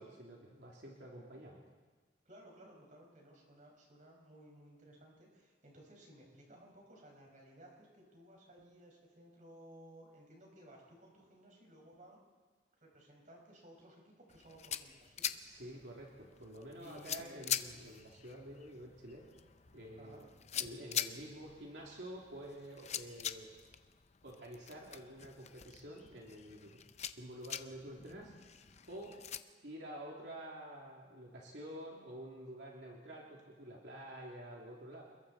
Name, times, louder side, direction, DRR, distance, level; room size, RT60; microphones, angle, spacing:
voice 1, 0.0-1.6 15.4-19.3 19.7-20.2 20.5-23.5 24.2-26.8 27.2-28.3 28.9-29.2 29.6-35.0, right 1 dB, 65° right, -3 dB, 3.1 m, -49 dB
voice 2, 2.3-12.2 12.8-15.3 16.8-17.4 20.0-20.3, right 1 dB, 45° right, 0 dB, 5.6 m, -58 dB
sound 1, 14.3-29.4, left 9 dB, 40° left, 0.7 m, -44 dB
28.5 x 22.0 x 4.3 m, 1.4 s
head